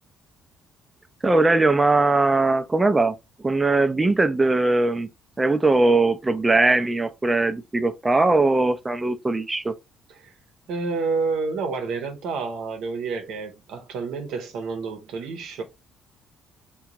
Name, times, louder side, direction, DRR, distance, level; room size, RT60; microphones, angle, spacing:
voice 1, 1.2-3.1 3.4-5.1 5.4-9.7, right 2 dB, 20° right, 0.5 m, -20 dB
voice 2, 10.7-15.6, right 4 dB, 75° right, 0.8 m, -29 dB
3.7 x 2.3 x 2.8 m
supercardioid pair, 65°, 0 cm